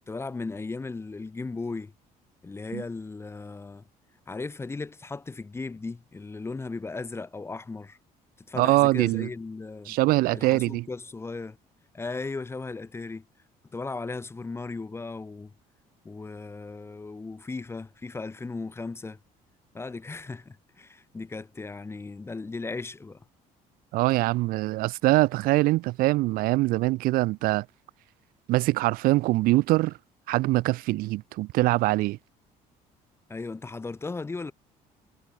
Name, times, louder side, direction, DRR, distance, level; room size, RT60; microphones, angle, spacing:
voice 1, 0.1-1.9 2.4-3.9 4.3-8.0 8.5-10.0 10.3-11.6 11.9-13.2 13.7-15.5 16.0-19.2 19.7-23.2 33.3-34.5, left 3 dB, 15° left, 0.8 m, -36 dB
voice 2, 8.5-9.3 9.9-10.9 23.9-27.7 28.5-30.0 30.3-32.2, right 19 dB, 75° right, 0.4 m, -23 dB
cardioid pair, 105°, 15 cm